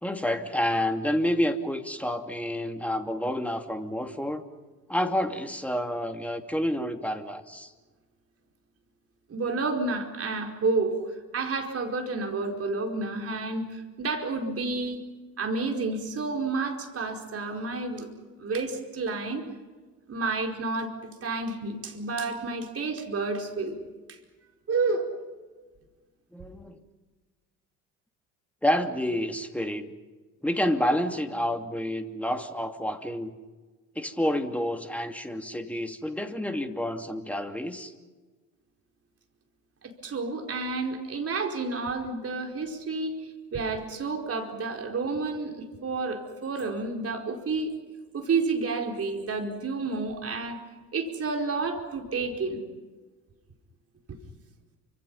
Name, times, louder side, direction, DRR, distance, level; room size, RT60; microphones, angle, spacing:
voice 1, 0.0-4.4 4.9-7.7 26.3-26.8 28.6-29.9 30.4-33.4 33.9-37.9, equal, 5° left, 6 dB, 2.7 m, -29 dB
voice 2, 9.3-15.0 15.4-18.1 18.4-19.4 20.1-20.9 21.2-23.8 24.1-24.2 24.7-25.1 40.0-47.7 48.1-50.6 50.9-52.6 54.1-54.2, right 3 dB, 30° right, 2 dB, 4.8 m, -30 dB
29.5 x 25.5 x 5.6 m, 1.3 s
figure-of-eight pair, 60°, 46 cm